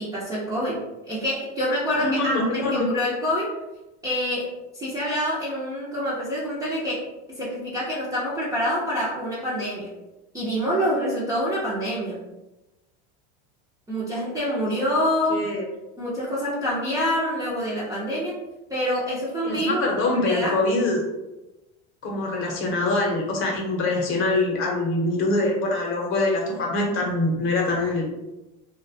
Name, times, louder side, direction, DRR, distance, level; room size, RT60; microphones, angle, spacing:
voice 1, 0.0-3.5 4.0-7.0 7.3-9.9 10.3-12.2 13.9-15.4 16.0-18.4 18.7-19.9 20.1-20.6, equal, 10° right, -8 dB, 0.3 m, -26 dB
voice 2, 2.0-2.9 15.3-15.7 19.4-21.0 22.0-28.1, left 2 dB, 40° left, -1 dB, 0.7 m, -24 dB
2.3 x 2.2 x 2.6 m, 1.0 s
supercardioid pair, 135°, 34 cm